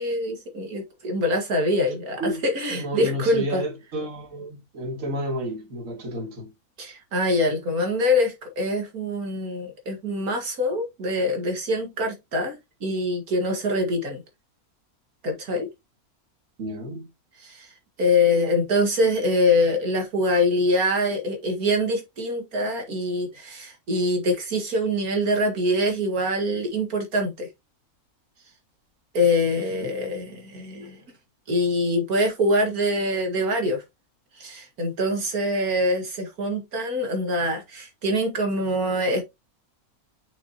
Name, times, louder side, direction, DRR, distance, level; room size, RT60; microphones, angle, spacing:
voice 1, 0.0-3.6 6.8-14.2 15.2-15.7 17.4-17.7 18.0-27.5 29.1-31.0 31.5-33.8 34.4-39.2, left 1 dB, 75° right, 2.3 m, -24 dB
voice 2, 2.7-6.5 16.6-17.1 29.7-29.9, equal, 55° right, 2.2 m, -31 dB
6.0 x 5.9 x 2.9 m
omnidirectional pair, 1.6 m